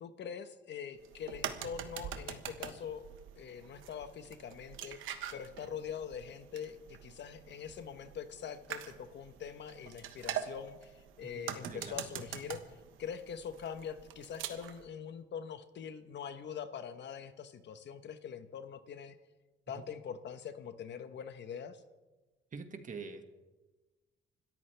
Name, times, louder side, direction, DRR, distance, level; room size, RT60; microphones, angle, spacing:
voice 1, 0.0-3.0 3.4-5.0 5.3-12.6 13.0-19.2 19.7-21.8, left 7 dB, 65° left, 10 dB, 1.2 m, -43 dB
sound 1, 1.0-14.8, right 10 dB, 85° right, 1.3 m, -44 dB
voice 2, 11.2-12.1 19.8-19.9 22.5-23.2, right 4 dB, 40° right, 6 dB, 1.9 m, -46 dB
26.5 x 13.5 x 3.4 m, 1.2 s
cardioid pair, 90°, 20 cm